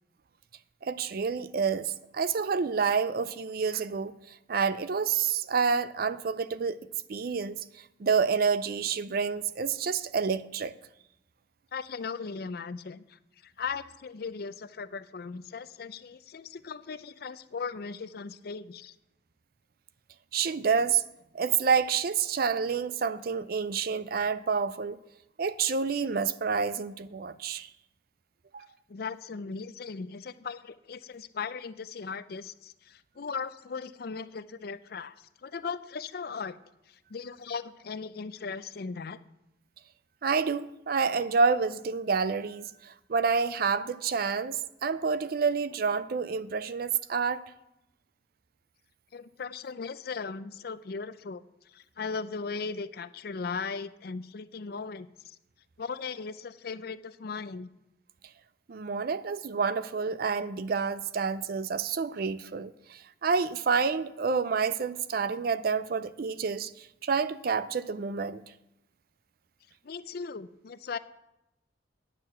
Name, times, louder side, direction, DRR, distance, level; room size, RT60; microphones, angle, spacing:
voice 1, 0.8-6.8 7.1-10.7 20.3-21.0 21.3-25.0 25.4-27.7 28.5-28.7 40.2-47.4 58.7-68.4, right 5 dB, 55° right, 0.4 m, -28 dB
voice 2, 11.7-18.9 28.9-36.6 36.9-39.2 49.1-51.4 51.7-55.4 55.8-57.7 69.8-71.0, left 5 dB, 55° left, 0.5 m, -38 dB
9.8 x 6.7 x 7.4 m
head